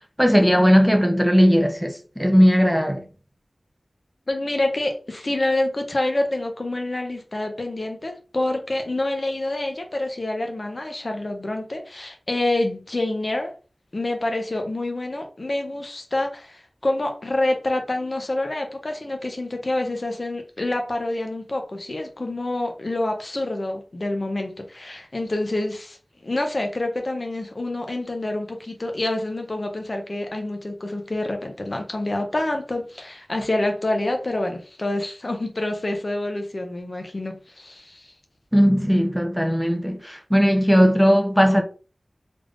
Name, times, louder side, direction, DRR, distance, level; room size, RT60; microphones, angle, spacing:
voice 1, 0.2-3.0 38.5-41.6, equal, ahead, 0.6 m, -17 dB
voice 2, 4.3-13.5 13.9-26.0 26.2-38.1, left 2 dB, 50° left, 0.7 m, -27 dB
3.4 x 3.4 x 2.5 m
wide cardioid pair, 55°, 0 cm